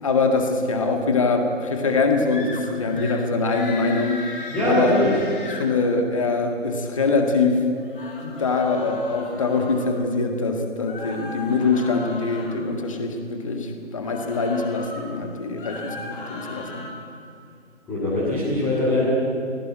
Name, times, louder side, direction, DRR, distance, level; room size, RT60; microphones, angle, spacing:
voice 1, 0.0-4.2 4.7-5.1 5.4-7.6 8.2-16.9, left 4 dB, 25° left, 4 dB, 1.9 m, -23 dB
sound 1, 2.3-2.6 2.9-3.2 3.5-5.7 7.7-9.9 10.8-12.6 14.0-15.0 15.5-16.9, left 2 dB, 40° left, 5.4 m, -37 dB
voice 2, 4.5-5.1 17.9-19.1, left 1 dB, 5° left, -10 dB, 2.4 m, -22 dB
19.5 x 18.0 x 9.0 m, 2.6 s
figure-of-eight pair, 160°, 39 cm